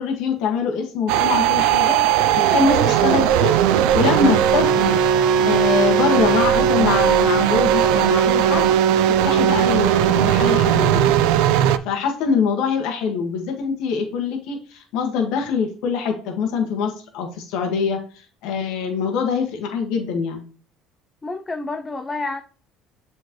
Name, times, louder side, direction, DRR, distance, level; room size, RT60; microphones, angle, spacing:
voice 1, 0.0-2.0 2.4-3.5 3.9-5.0 5.4-8.7 9.2-11.1 11.8-18.0 18.4-20.4, left 5 dB, 75° left, 1.7 m, -23 dB
sound 1, 1.1-11.8, right 9 dB, 80° right, 0.4 m, -17 dB
voice 2, 21.2-22.4, left 3 dB, 20° left, 0.5 m, -29 dB
7.5 x 4.5 x 3.1 m
supercardioid pair, 100°, 0 cm